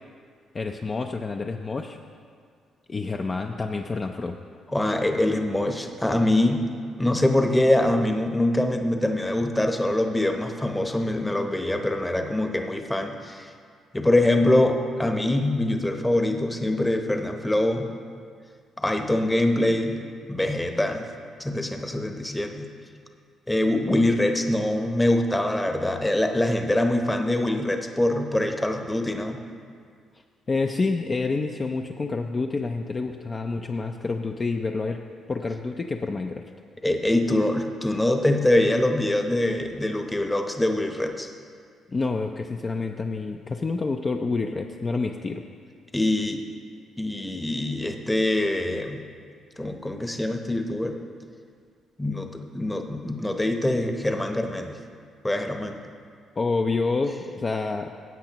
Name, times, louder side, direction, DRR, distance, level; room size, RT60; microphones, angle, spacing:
voice 1, 0.5-2.0 2.9-4.4 30.5-35.0 35.3-36.5 41.9-45.4 56.4-57.9, left 3 dB, 35° left, 4 dB, 0.4 m, -28 dB
voice 2, 4.7-6.6 7.0-13.5 13.9-17.9 18.8-20.0 20.3-21.1 21.4-22.7 23.5-29.4 36.8-41.3 45.9-46.4 47.0-49.0 49.6-51.0 52.0-54.7 55.2-55.8, left 1 dB, 10° left, 4 dB, 0.8 m, -24 dB
15.0 x 8.0 x 2.9 m, 2.1 s
cardioid pair, 90°, 0 cm